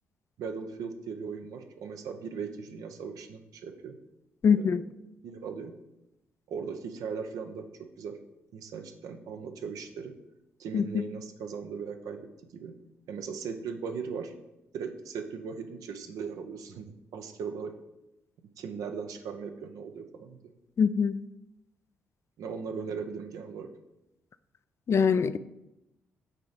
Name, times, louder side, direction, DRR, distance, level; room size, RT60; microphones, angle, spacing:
voice 1, 0.4-4.0 4.5-4.7 5.2-5.7 6.5-8.2 8.5-10.1 10.6-12.3 12.5-12.7 13.1-14.3 14.7-16.9 17.1-17.7 18.6-20.4 22.4-23.7, right 6 dB, 65° right, 6 dB, 0.7 m, -38 dB
voice 2, 4.4-4.8 10.7-10.9 20.8-21.2 24.9-25.4, left 6 dB, 45° left, 14 dB, 0.4 m, -23 dB
6.5 x 3.9 x 5.1 m, 0.92 s
hypercardioid pair, 40°, 6 cm